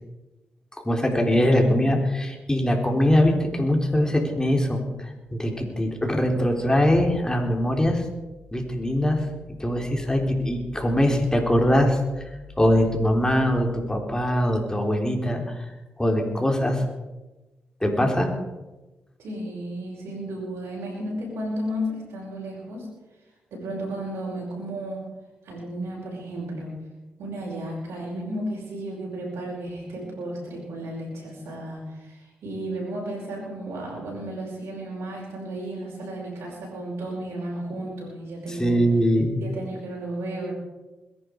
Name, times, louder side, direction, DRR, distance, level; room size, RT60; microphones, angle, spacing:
voice 1, 0.8-8.0 8.5-9.3 9.6-12.3 12.6-15.6 16.0-16.8 17.8-18.3 38.5-39.4, equal, 15° left, 2 dB, 4.1 m, -22 dB
voice 2, 19.2-22.9 23.5-25.1 25.4-26.8 27.2-38.8 39.4-40.5, right 1 dB, 80° right, -5 dB, 5.5 m, -33 dB
21.5 x 10.5 x 4.9 m, 1.1 s
supercardioid pair, 50°, 4 cm